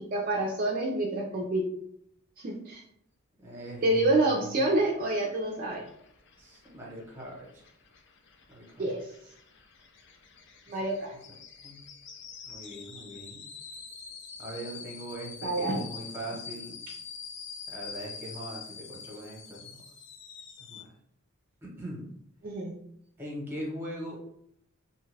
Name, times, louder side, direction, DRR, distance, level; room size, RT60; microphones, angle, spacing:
voice 1, 0.1-1.6 2.4-2.8 3.8-5.8 8.8-9.0 10.7-11.1 15.4-15.8 22.4-22.7, right 2 dB, 40° right, -1 dB, 0.4 m, -27 dB
voice 2, 3.4-4.1 4.4-4.5 6.4-7.6 8.5-8.8 10.7-10.8 11.6-11.8 12.4-13.4 14.4-16.8 17.7-19.8 20.7-20.9 21.6-22.0 23.2-24.3, right 1 dB, 10° right, -4 dB, 0.9 m, -41 dB
sound 1, 4.7-20.8, left 6 dB, 55° left, 0.4 m, -46 dB
2.7 x 2.3 x 3.2 m, 0.74 s
head